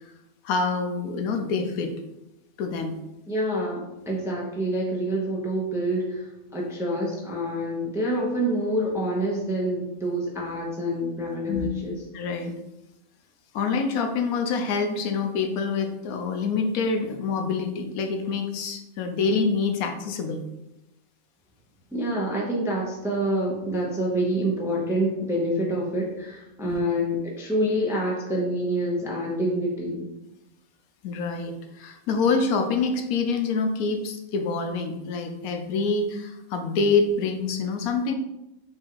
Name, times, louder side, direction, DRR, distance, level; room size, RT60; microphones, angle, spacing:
voice 1, 0.4-1.9 2.6-3.0 11.5-11.7 12.1-12.5 13.5-20.4 26.6-26.8 31.0-38.1, left 4 dB, 80° left, 5 dB, 1.1 m, -26 dB
voice 2, 3.3-6.3 6.5-12.0 18.3-18.5 21.9-30.1, right 1 dB, 5° right, -3 dB, 0.5 m, -27 dB
4.4 x 2.4 x 4.5 m, 0.92 s
omnidirectional pair, 1.5 m